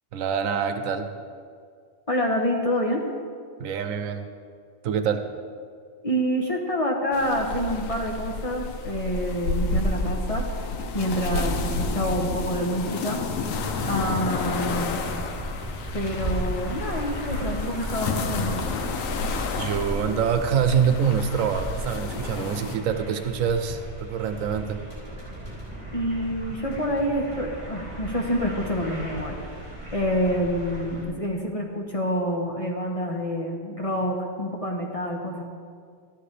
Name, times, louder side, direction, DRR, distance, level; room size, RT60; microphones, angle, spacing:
voice 1, 0.1-1.1 3.6-4.3 4.8-5.2 19.5-24.8, right 7 dB, 85° right, 8 dB, 1.1 m, -25 dB
voice 2, 2.1-3.0 6.0-10.5 10.9-13.2 13.8-15.0 15.9-18.5 25.9-29.7 29.9-35.4, equal, 30° left, 0 dB, 1.0 m, -27 dB
sound 1, 7.1-22.8, left 3 dB, 80° left, 1.1 m, -30 dB
sound 2, 13.4-31.0, right 1 dB, 20° right, 3.3 m, -36 dB
13.0 x 10.0 x 3.3 m, 2.1 s
omnidirectional pair, 1.4 m